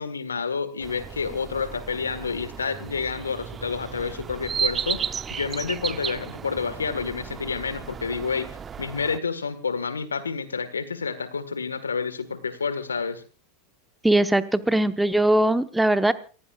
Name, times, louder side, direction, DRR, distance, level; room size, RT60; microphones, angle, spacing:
voice 1, 0.0-5.0 5.3-8.5 8.8-13.2, left 5 dB, 90° left, 12 dB, 1.6 m, -29 dB
sound 1, 0.8-9.2, right 7 dB, 25° right, 0.6 m, -34 dB
voice 2, 14.0-16.1, right 1 dB, 5° right, 12 dB, 1.1 m, -20 dB
28.5 x 15.0 x 2.4 m, 0.36 s
hypercardioid pair, 90°, 0 cm